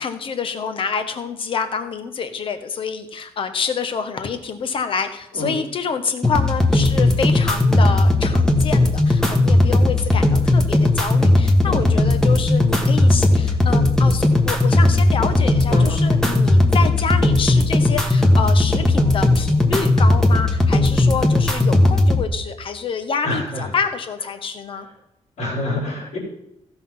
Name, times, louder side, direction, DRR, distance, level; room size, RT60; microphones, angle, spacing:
voice 1, 0.0-24.9, left 5 dB, 50° left, 8 dB, 1.2 m, -27 dB
sound 1, 6.2-22.2, left 2 dB, 5° left, 1.4 m, -16 dB
voice 2, 15.7-16.1 23.2-23.7 25.4-26.2, left 1 dB, 90° left, -3 dB, 4.6 m, -27 dB
15.5 x 6.1 x 5.6 m, 0.85 s
cardioid pair, 145°, 11 cm